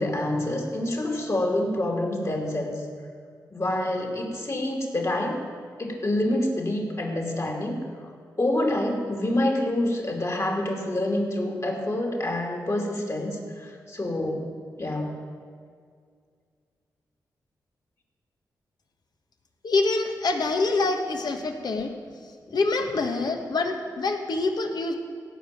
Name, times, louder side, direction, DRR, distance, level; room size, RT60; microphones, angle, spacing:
voice 1, 0.0-2.8 3.5-5.4 5.8-7.8 8.4-14.5 14.8-15.1, left 1 dB, 40° left, 1 dB, 2.8 m, -27 dB
voice 2, 19.6-21.9 22.5-24.9, left 3 dB, 65° left, 4 dB, 1.5 m, -25 dB
16.0 x 5.5 x 9.0 m, 2.1 s
supercardioid pair, 45°, 8 cm